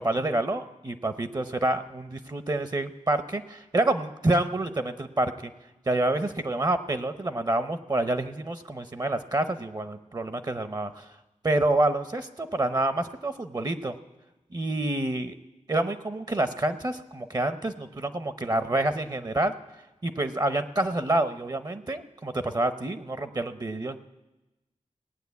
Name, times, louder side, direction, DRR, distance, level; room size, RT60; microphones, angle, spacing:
voice 1, 0.0-5.5 5.9-11.1 11.4-13.9 14.5-15.3 15.7-19.5 20.0-24.0, right 2 dB, 30° right, 11 dB, 0.7 m, -28 dB
18.0 x 9.1 x 8.2 m, 1.0 s
wide cardioid pair, 100°, 13 cm